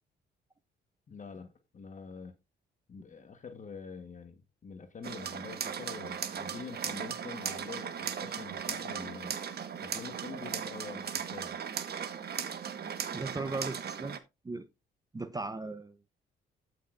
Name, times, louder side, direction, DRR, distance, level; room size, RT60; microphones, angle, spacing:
voice 1, 1.1-2.4 2.9-9.4 9.8-11.6, left 5 dB, 40° left, 1.4 m, -46 dB
sound 1, 5.0-14.2, right 7 dB, 55° right, 1.4 m, -37 dB
voice 2, 13.1-14.2 14.4-14.7 15.1-16.1, right 3 dB, 20° right, 0.8 m, -37 dB
14.0 x 6.3 x 2.6 m
cardioid pair, 90°, 20 cm